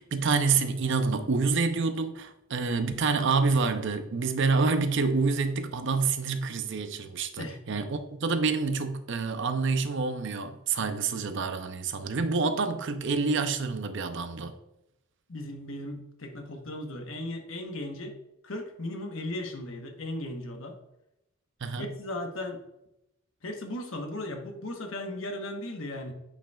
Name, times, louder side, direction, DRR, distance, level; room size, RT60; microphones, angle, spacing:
voice 1, 0.0-14.6 21.6-21.9, right 4 dB, 60° right, 0.6 m, -27 dB
voice 2, 15.3-18.1 18.4-20.8 21.8-22.6 23.4-26.1, left 1 dB, 70° left, 1.1 m, -36 dB
8.7 x 5.3 x 2.4 m
head